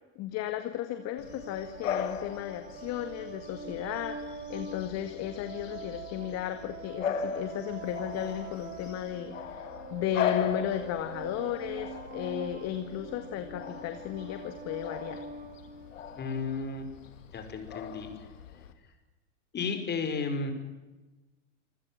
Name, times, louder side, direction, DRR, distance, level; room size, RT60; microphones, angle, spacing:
voice 1, 0.2-15.2, left 11 dB, 40° left, 9 dB, 2.0 m, -35 dB
sound 1, 1.0-16.4, right 5 dB, 25° right, 2.2 m, -44 dB
Bark / Bird vocalization bird call bird song, 1.2-18.7, left 8 dB, 85° left, 2.8 m, -39 dB
voice 2, 16.2-16.9 17.3-18.1 19.5-20.5, left 4 dB, 25° left, 7 dB, 5.3 m, -33 dB
27.0 x 16.0 x 9.1 m, 1.1 s
hypercardioid pair, 110°, 38 cm